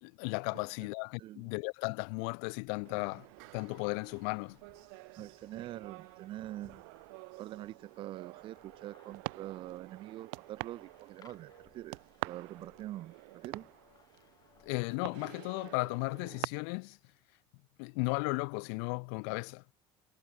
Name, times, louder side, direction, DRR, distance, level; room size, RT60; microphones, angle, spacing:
voice 1, 0.0-3.3 3.5-4.6 14.6-17.0 17.8-19.6, left 40 dB or more, 80° left, 0.8 m, -35 dB
voice 2, 1.2-1.5 5.1-6.8 7.4-13.7, right 14 dB, 40° right, 0.6 m, -45 dB
sound 1, 2.7-15.3, left 9 dB, 30° left, 2.0 m, -66 dB
sound 2, 2.8-16.4, right 34 dB, 90° right, 0.8 m, -47 dB
cardioid pair, 155°, 13 cm